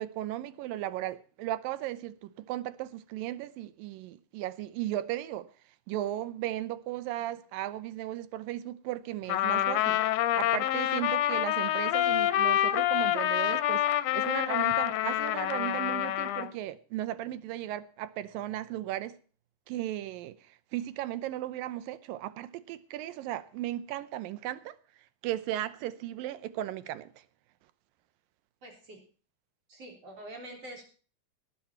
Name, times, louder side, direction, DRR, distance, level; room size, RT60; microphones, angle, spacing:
voice 1, 0.0-5.5 5.9-10.0 10.4-19.1 19.7-20.4 20.7-24.7 25.2-27.1, right 13 dB, 85° right, 2.5 m, -36 dB
Trumpet, 9.3-16.5, left 13 dB, 75° left, 2.1 m, -27 dB
voice 2, 28.6-29.0 29.7-30.8, right 1 dB, 45° right, 4.7 m, -45 dB
18.5 x 8.8 x 4.3 m
omnidirectional pair, 4.0 m